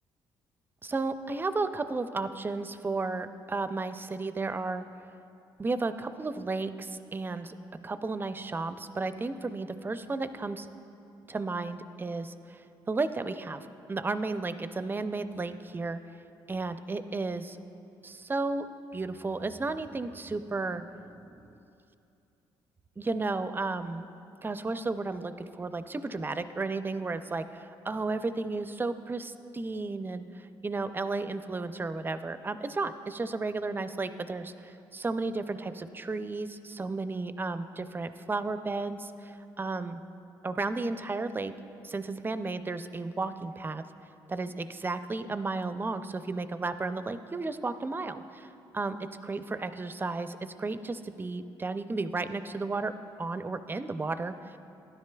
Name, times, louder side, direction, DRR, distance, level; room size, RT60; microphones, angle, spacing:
voice 1, 0.8-4.8 5.6-7.5 7.8-10.7 11.3-12.6 12.9-16.0 16.5-17.6 18.0-18.7 18.9-20.9 21.4-21.6 23.0-24.1 24.4-40.0 40.4-41.5 41.8-43.8 44.3-48.5 48.7-54.6, right 3 dB, 20° right, 11 dB, 0.4 m, -33 dB
12.0 x 10.5 x 2.3 m, 2.7 s
supercardioid pair, 70°, 10 cm